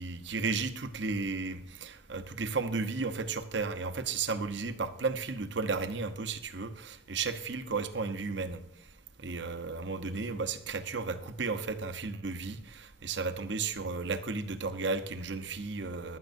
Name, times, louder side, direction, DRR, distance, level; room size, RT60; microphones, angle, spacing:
voice 1, 0.0-8.6 9.2-16.2, right 4 dB, 65° right, 8 dB, 1.0 m, -34 dB
15.5 x 11.5 x 2.6 m, 0.84 s
head